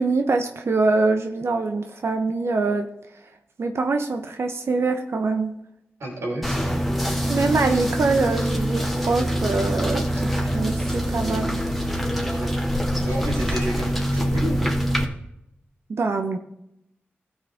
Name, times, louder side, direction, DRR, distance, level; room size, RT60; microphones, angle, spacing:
voice 1, 0.0-2.9 3.6-5.5 7.3-11.6 15.9-16.4, right 3 dB, 70° right, 5 dB, 0.9 m, -24 dB
voice 2, 6.0-6.7 12.3-12.5 13.0-14.7, right 1 dB, 85° right, -3 dB, 3.8 m, -30 dB
sound 1, 6.4-15.1, equal, ahead, 2.0 m, -24 dB
15.0 x 6.4 x 3.6 m, 0.81 s
cardioid pair, 45°, 5 cm